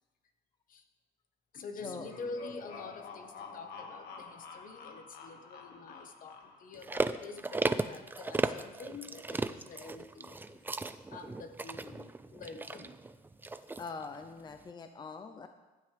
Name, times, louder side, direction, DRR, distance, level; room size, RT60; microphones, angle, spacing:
voice 1, 1.5-10.6 10.8-13.0, left 3 dB, 55° left, 7 dB, 1.2 m, -47 dB
sound 1, 1.7-6.8, left 5 dB, 75° left, 1.8 m, -48 dB
sound 2, 6.7-14.1 14.5-14.6, right 3 dB, 10° right, 0.4 m, -36 dB
voice 2, 13.8-15.5, left 4 dB, 25° left, 7 dB, 0.7 m, -43 dB
15.5 x 10.5 x 3.4 m, 1.2 s
cardioid pair, 110°, 17 cm